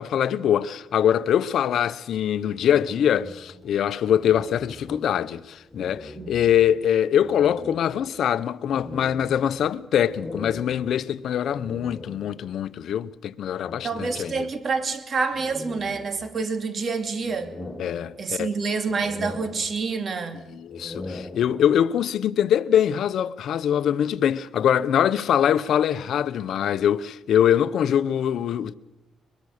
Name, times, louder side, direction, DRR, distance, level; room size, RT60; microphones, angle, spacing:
voice 1, 0.0-14.3 17.8-18.5 20.5-28.7, left 9 dB, 70° left, 0.8 m, -23 dB
sound 1, 2.6-5.4 5.7-6.8 7.2-12.6 13.6-14.9 15.3-16.6 17.0-18.5 18.8-20.2 20.6-21.9, left 2 dB, 10° left, 1.9 m, -41 dB
voice 2, 13.8-17.5 18.2-20.5, right 4 dB, 45° right, 2.5 m, -27 dB
22.0 x 22.0 x 6.6 m
cardioid pair, 90°, 0 cm